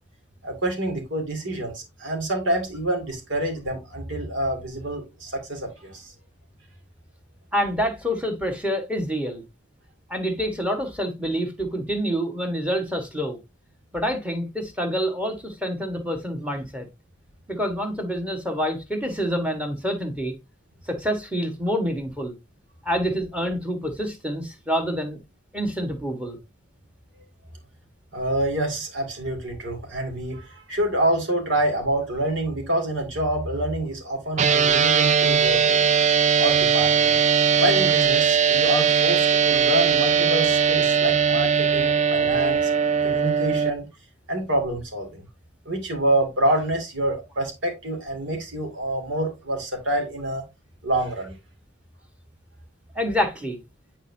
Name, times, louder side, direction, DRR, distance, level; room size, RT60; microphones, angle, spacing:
voice 1, 0.4-6.1 28.1-35.9 36.4-37.2 37.6-42.7 43.0-43.9 44.3-45.2 45.7-50.4 50.8-51.4, right 1 dB, 85° right, 2.5 m, -27 dB
voice 2, 7.5-9.4 10.1-13.4 13.9-16.9 17.5-20.3 20.9-22.3 22.8-25.2 25.5-26.4 52.9-53.6, equal, 5° right, 1.4 m, -27 dB
sound 1, 34.4-43.7, right 7 dB, 40° right, 0.4 m, -20 dB
9.4 x 4.4 x 2.7 m
head